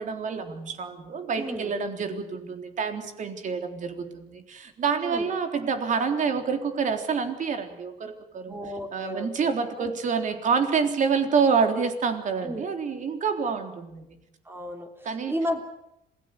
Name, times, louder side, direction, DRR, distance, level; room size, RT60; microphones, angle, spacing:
voice 1, 0.0-8.6 8.9-14.2 15.0-15.3, right 5 dB, 50° right, 6 dB, 3.7 m, -27 dB
voice 2, 1.4-1.7 5.0-5.3 8.5-9.5 9.8-10.0 12.4-12.7 14.5-15.6, equal, 15° right, 4 dB, 3.3 m, -33 dB
27.0 x 18.0 x 8.4 m, 0.86 s
cardioid pair, 110°, 17 cm